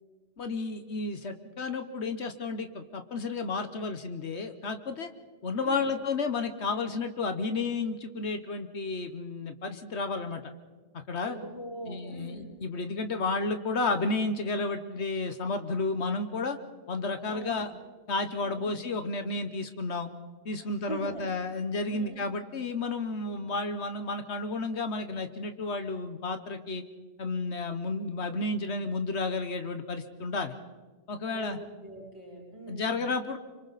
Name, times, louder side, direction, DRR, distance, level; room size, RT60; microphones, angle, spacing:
voice 1, 0.4-5.1 5.4-10.4 10.9-11.4 11.8-16.6 16.9-17.7 18.1-20.1 20.4-26.8 27.2-30.5 31.1-31.6 32.7-33.4, left 3 dB, 75° left, 8 dB, 1.4 m, -32 dB
voice 2, 11.2-12.5 17.3-17.7 18.4-18.7 20.6-21.2 21.9-22.2 31.2-33.0, right 2 dB, 25° right, -4 dB, 5.2 m, -42 dB
27.0 x 24.5 x 4.1 m, 1.3 s
omnidirectional pair, 1.2 m